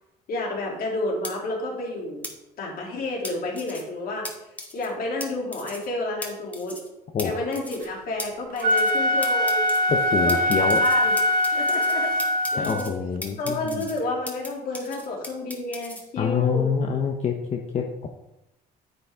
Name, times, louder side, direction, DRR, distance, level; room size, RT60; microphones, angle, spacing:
voice 1, 0.3-2.3 2.6-4.3 4.7-6.8 7.2-9.7 10.2-11.1 11.5-12.2 12.5-12.9 13.4-16.7, left 2 dB, 60° left, -1 dB, 3.0 m, -30 dB
sound 1, 1.2-1.3 2.2-2.3 3.2-3.8 4.2-4.3 4.6-4.9 5.2-5.3 5.5-5.9 6.2-6.3 6.5-6.9 7.2-7.3 7.5-7.9 8.2-8.3 8.6-9.0 9.2-9.8 10.3-11.9 12.2-12.9 13.2-14.5 14.7-16.0, left 1 dB, 10° left, 1.8 m, -36 dB
Wind instrument woodwind instrument, 8.5-12.9, left 1 dB, 60° right, 1.2 m, -22 dB
voice 2, 9.9-10.8 12.6-13.9 16.2-18.1, left 6 dB, 40° left, 3 dB, 0.9 m, -26 dB
9.4 x 8.2 x 3.6 m, 0.90 s
cardioid pair, 110°, 17 cm